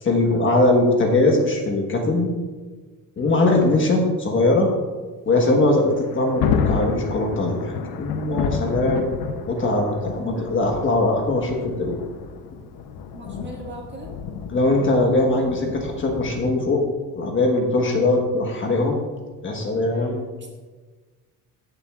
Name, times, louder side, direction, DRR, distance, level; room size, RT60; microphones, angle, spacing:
voice 1, 0.0-2.3 3.2-4.7 5.3-9.0 9.5-11.9 14.5-16.8 17.2-19.0 19.4-20.2, left 2 dB, 35° left, 1 dB, 1.3 m, -21 dB
Thunder, 5.8-16.5, left 6 dB, 85° left, 0.7 m, -30 dB
voice 2, 13.1-14.1 19.8-20.5, right 2 dB, 30° right, 0 dB, 1.7 m, -39 dB
14.5 x 7.4 x 2.4 m, 1.4 s
cardioid pair, 155°, 36 cm